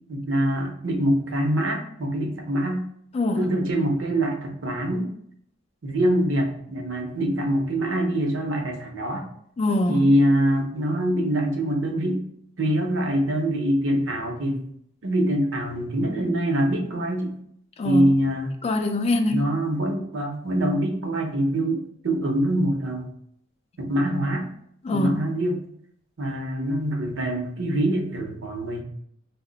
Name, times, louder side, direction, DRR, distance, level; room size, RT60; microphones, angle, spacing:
voice 1, 0.1-2.8 3.3-5.1 5.8-9.3 9.9-12.2 12.6-14.6 15.0-17.3 17.8-18.5 19.3-23.1 23.8-24.5 24.9-25.6 26.2-28.8, right 1 dB, 70° right, 0.7 m, -24 dB
voice 2, 3.1-3.5 9.6-10.1 17.8-18.1 18.6-19.4 24.8-25.2, left 1 dB, 30° left, 0.3 m, -23 dB
2.8 x 2.1 x 3.8 m
head